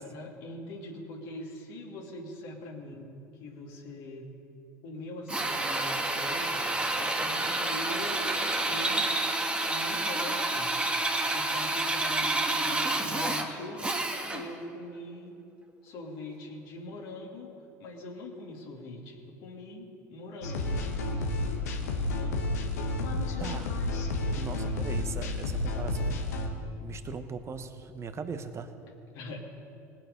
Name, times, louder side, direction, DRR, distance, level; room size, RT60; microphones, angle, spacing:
voice 1, 0.0-3.1 3.4-4.2 4.8-9.1 9.7-10.7 11.2-13.9 14.2-15.4 15.8-17.5 17.8-20.7 22.1-22.4 29.1-29.5, left 1 dB, 65° left, -1 dB, 2.3 m, -42 dB
Drill, 5.3-14.6, right 2 dB, 10° right, 1.5 m, -29 dB
sound 1, 20.4-26.5, left 2 dB, 80° left, 1.4 m, -31 dB
voice 2, 23.4-23.7 24.4-26.5 26.8-28.7, right 5 dB, 30° right, 8 dB, 1.1 m, -39 dB
19.5 x 7.4 x 5.3 m, 2.5 s
hypercardioid pair, 75°, 9 cm